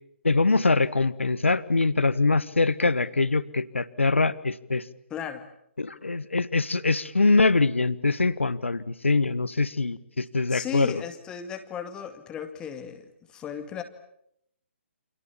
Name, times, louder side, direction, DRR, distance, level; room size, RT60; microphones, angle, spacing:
voice 1, 0.2-4.8 5.8-11.0, left 3 dB, 70° left, 16 dB, 1.5 m, -23 dB
voice 2, 5.1-5.5 10.5-13.8, left 8 dB, 10° left, 7 dB, 2.1 m, -36 dB
29.0 x 28.0 x 7.3 m, 0.75 s
figure-of-eight pair, 135°, 7 cm